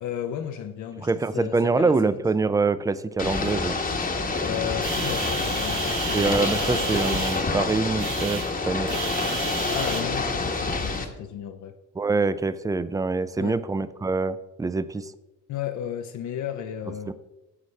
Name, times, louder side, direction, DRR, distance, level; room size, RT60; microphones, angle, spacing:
voice 1, 0.0-1.9 4.4-6.4 9.7-11.7 13.4-13.6 15.5-17.1, left 9 dB, 70° left, 6 dB, 0.6 m, -33 dB
voice 2, 1.0-3.8 6.1-8.9 12.0-15.1 17.1-17.2, right 3 dB, 10° right, 14 dB, 0.4 m, -25 dB
Ocean / Boat Water vehicle, 3.2-11.0, left 3 dB, 30° left, 1.0 m, -27 dB
sound 1, 4.8-10.0, right 7 dB, 85° right, 1.1 m, -33 dB
9.7 x 6.3 x 3.2 m, 1.0 s
cardioid pair, 90°, 30 cm